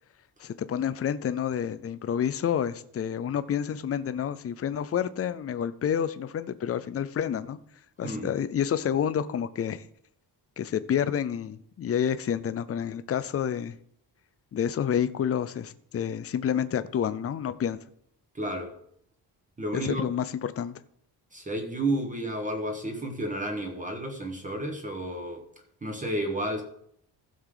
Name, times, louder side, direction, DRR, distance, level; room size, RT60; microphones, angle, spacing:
voice 1, 0.4-7.6 8.0-9.8 10.6-13.7 14.5-17.8 19.7-20.7, left 8 dB, 35° left, 0.5 m, -29 dB
voice 2, 18.3-18.7 19.6-20.1 21.3-25.4 25.8-26.6, right 1 dB, 20° right, 1.2 m, -31 dB
15.0 x 6.5 x 3.8 m
wide cardioid pair, 175°, 42 cm